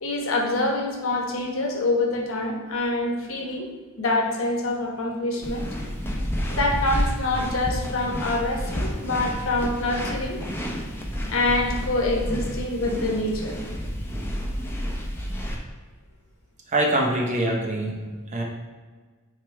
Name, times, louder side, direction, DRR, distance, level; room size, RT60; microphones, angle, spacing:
voice 1, 0.0-3.7 4.0-5.7 6.5-10.4 11.2-13.5, left 2 dB, 70° left, 1 dB, 1.2 m, -26 dB
sound 1, 5.4-15.6, equal, 10° left, 0.8 m, -30 dB
voice 2, 16.7-18.0 18.3-18.4, right 1 dB, 35° right, 0 dB, 0.9 m, -23 dB
9.1 x 3.6 x 3.4 m, 1.4 s
head